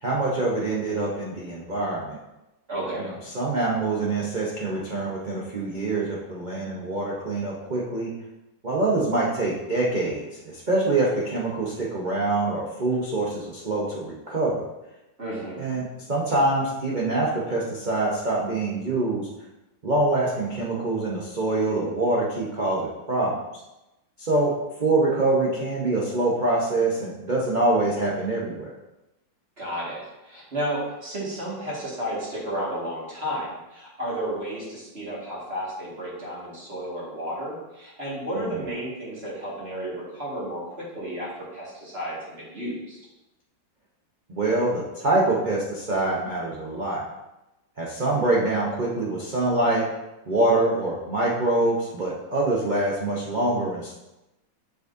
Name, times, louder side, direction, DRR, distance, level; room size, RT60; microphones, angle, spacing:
voice 1, 0.0-2.2 3.0-8.1 8.6-14.7 15.6-19.3 19.8-23.3 24.2-24.5 24.8-28.7 38.4-38.5 44.3-47.0 47.8-49.8 50.3-53.9, right 2 dB, 85° right, -5 dB, 0.4 m, -25 dB
voice 2, 2.7-3.1 15.2-15.6 29.6-41.3 41.5-43.0, right 1 dB, 30° right, -6 dB, 2.0 m, -32 dB
6.9 x 5.2 x 2.6 m, 0.98 s
omnidirectional pair, 2.2 m